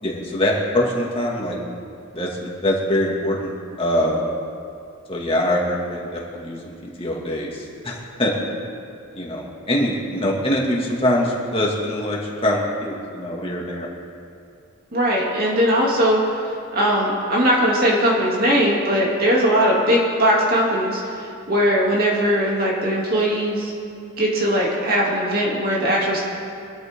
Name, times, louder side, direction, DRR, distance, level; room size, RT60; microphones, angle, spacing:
voice 1, 0.0-1.6 2.1-4.3 5.1-8.3 9.1-13.9, left 1 dB, 25° left, -3 dB, 2.3 m, -23 dB
voice 2, 14.9-16.2 16.7-21.0 21.5-23.7 24.2-26.2, equal, 45° right, -4 dB, 2.8 m, -19 dB
23.5 x 13.0 x 3.8 m, 2.4 s
head